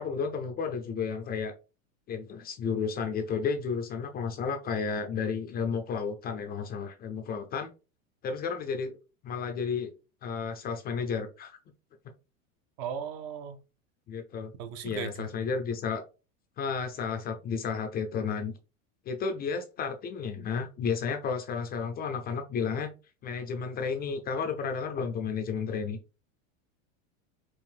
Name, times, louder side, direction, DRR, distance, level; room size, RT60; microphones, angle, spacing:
voice 1, 0.0-1.5 2.1-7.7 8.2-9.0 9.2-9.9 10.2-11.6 14.1-14.5 14.8-16.0 16.6-18.5 19.1-22.9 23.2-26.0, left 5 dB, 25° left, 0.4 m, -32 dB
voice 2, 12.8-13.6 14.6-15.3, right 8 dB, 50° right, 0.8 m, -37 dB
4.6 x 2.5 x 3.6 m
supercardioid pair, 140°, 41 cm